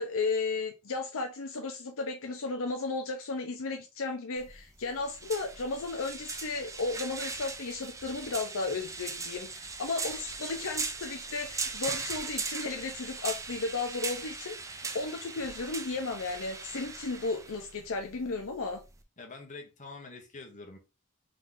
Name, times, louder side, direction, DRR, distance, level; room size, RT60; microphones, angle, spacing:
voice 1, 0.0-18.8, left 3 dB, 65° left, 0.6 m, -34 dB
sound 1, 4.4-19.0, right 4 dB, 15° right, 0.4 m, -39 dB
voice 2, 19.2-20.8, left 3 dB, 35° left, 1.2 m, -45 dB
3.8 x 3.1 x 3.7 m
head